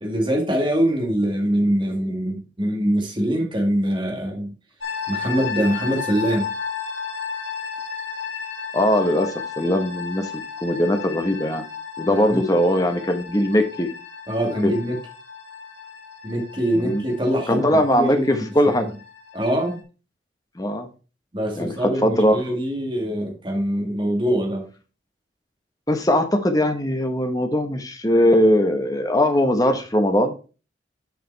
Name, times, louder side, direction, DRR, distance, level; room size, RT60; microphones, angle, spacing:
voice 1, 0.0-4.5 5.1-6.5 12.0-12.4 14.3-15.0 16.2-18.9 19.3-19.8 21.3-24.7, equal, 25° right, 1 dB, 1.9 m, -23 dB
sound 1, 4.8-19.8, left 6 dB, 70° left, 1.7 m, -34 dB
voice 2, 8.7-10.3 10.6-11.6 12.0-13.9 14.6-14.7 16.7-17.0 17.5-18.9 20.6-20.9 21.5-22.4 25.9-30.3, left 1 dB, 20° left, 6 dB, 1.0 m, -20 dB
6.7 x 5.0 x 4.4 m, 0.34 s
head